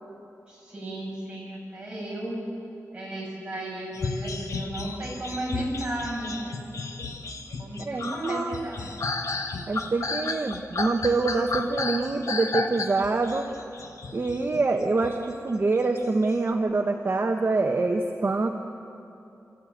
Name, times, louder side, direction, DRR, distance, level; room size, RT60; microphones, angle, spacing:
voice 1, 0.5-2.4 2.9-6.6 7.6-8.9, right 1 dB, 15° right, -4 dB, 7.7 m, -34 dB
sound 1, 3.9-15.2 16.0-16.4, left 3 dB, 70° left, 1.4 m, -33 dB
voice 2, 7.8-8.6 9.7-13.5 14.1-18.5, right 3 dB, 40° right, 4 dB, 1.1 m, -25 dB
28.0 x 14.5 x 9.0 m, 2.8 s
wide cardioid pair, 130°, 6 cm